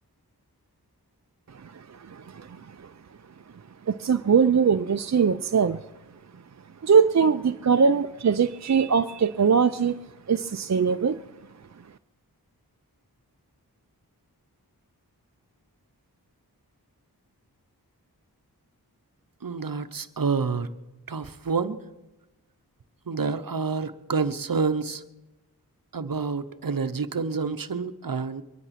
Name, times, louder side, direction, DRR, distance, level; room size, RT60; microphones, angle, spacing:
voice 1, 1.5-2.9 3.9-5.8 6.8-10.0 10.3-11.2, right 6 dB, 45° right, 9 dB, 0.5 m, -22 dB
voice 2, 19.4-20.7 21.1-21.8 23.1-25.0 25.9-28.4, right 5 dB, 60° right, 12 dB, 0.9 m, -28 dB
22.5 x 11.0 x 5.9 m, 1.0 s
wide cardioid pair, 40°, 38 cm